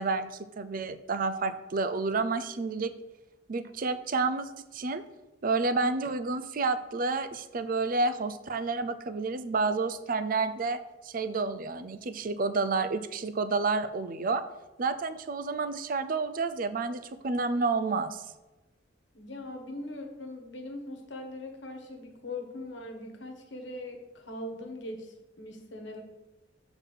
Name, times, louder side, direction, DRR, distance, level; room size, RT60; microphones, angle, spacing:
voice 1, 0.0-2.9 3.5-5.0 5.4-14.4 14.8-18.2, right 3 dB, 45° right, 12 dB, 0.4 m, -30 dB
voice 2, 19.1-26.0, left 1 dB, 70° left, 3 dB, 1.3 m, -41 dB
7.3 x 4.0 x 5.4 m, 1.1 s
head